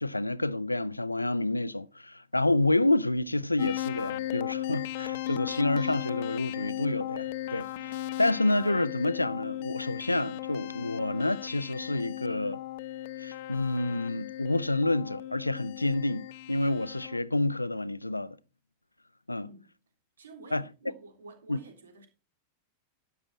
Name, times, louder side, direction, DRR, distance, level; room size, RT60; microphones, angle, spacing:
voice 1, 0.0-12.6 13.2-18.4 19.3-19.5 20.5-20.6 21.5-21.6, left 2 dB, 85° left, 0.5 m, -29 dB
sound 1, 3.6-17.2, left 13 dB, 50° left, 0.7 m, -36 dB
voice 2, 20.2-22.1, right 3 dB, 70° right, 3.5 m, -50 dB
12.5 x 9.7 x 4.1 m
figure-of-eight pair, 90°, 0 cm